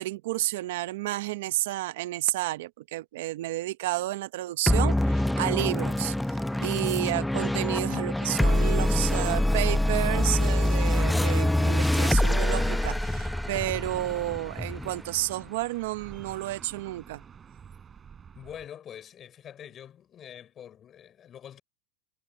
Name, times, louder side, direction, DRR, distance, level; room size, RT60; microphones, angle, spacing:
voice 1, 0.0-17.2, right 16 dB, 70° right, 0.8 m, -31 dB
sound 1, 4.7-15.4, left 1 dB, 5° left, 0.7 m, -25 dB
sound 2, 8.4-18.7, right 7 dB, 20° right, 3.7 m, -48 dB
voice 2, 18.3-21.6, left 9 dB, 30° left, 4.8 m, -45 dB
supercardioid pair, 130°, 0 cm